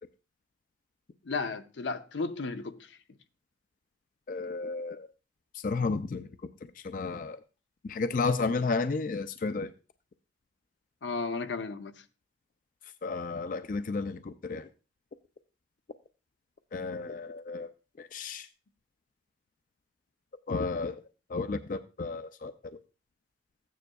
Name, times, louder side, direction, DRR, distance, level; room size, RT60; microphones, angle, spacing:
voice 1, 1.2-3.0 11.0-12.0, left 4 dB, 85° left, 0.7 m, -34 dB
voice 2, 4.3-5.1 5.5-6.3 6.8-7.4 7.8-9.7 13.0-14.7 16.7-17.7 18.0-18.5 20.5-21.0 21.3-22.8, left 4 dB, 45° left, 0.4 m, -32 dB
14.5 x 9.3 x 2.3 m
head